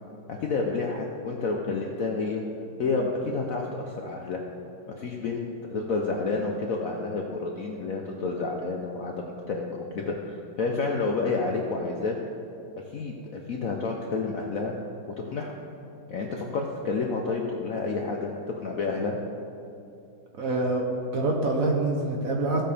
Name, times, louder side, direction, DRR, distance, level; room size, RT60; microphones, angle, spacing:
voice 1, 0.3-2.4 2.8-4.4 4.9-12.2 12.9-14.7 15.3-15.5 16.1-18.3 18.6-19.2, left 3 dB, 60° left, 1 dB, 0.9 m, -29 dB
voice 2, 20.4-22.6, right 2 dB, 50° right, 0 dB, 1.2 m, -26 dB
15.5 x 7.6 x 3.4 m, 2.6 s
omnidirectional pair, 2.2 m